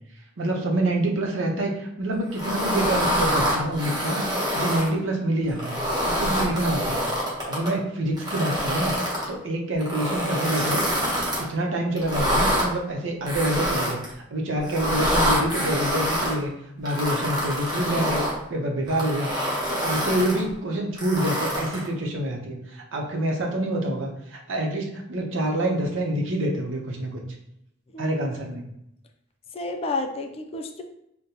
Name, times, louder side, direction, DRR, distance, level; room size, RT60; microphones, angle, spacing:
voice 1, 0.4-4.2 4.5-5.8 6.0-7.0 7.5-10.9 11.4-14.0 14.3-16.5 16.8-18.2 18.5-19.3 19.7-27.2 28.0-28.6, right 1 dB, 85° right, 1 dB, 0.7 m, -26 dB
sound 1, 2.3-4.9 5.5-7.7 8.2-9.3 9.8-11.4 12.0-12.7 13.3-14.1 14.6-16.3 16.9-18.4 18.9-20.4 21.0-21.9, equal, 20° right, 1.0 m, -26 dB
voice 2, 29.5-30.8, left 2 dB, 30° left, 4 dB, 0.3 m, -30 dB
5.1 x 2.1 x 2.8 m, 0.78 s
head